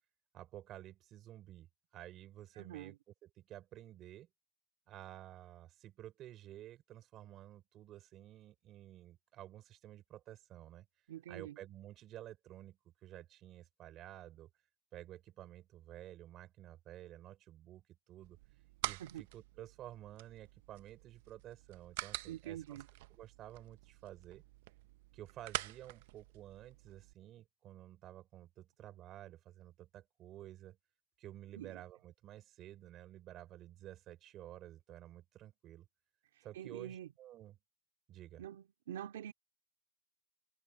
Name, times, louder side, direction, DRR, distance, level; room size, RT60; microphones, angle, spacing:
voice 1, 0.3-1.7 1.9-3.0 3.2-4.3 4.9-10.9 11.3-14.5 14.9-18.4 18.8-22.8 23.1-24.4 25.1-30.8 31.2-35.9 36.4-37.6 38.1-38.4, right 13 dB, 20° right, 5.2 m, -52 dB
voice 2, 2.6-3.0 11.1-11.6 19.0-19.2 22.3-22.9 31.5-31.8 36.4-37.1 38.4-39.3, right 11 dB, 65° right, 2.1 m, -46 dB
sound 1, 18.2-27.1, right 18 dB, 45° right, 0.6 m, -47 dB
supercardioid pair, 180°, 0 cm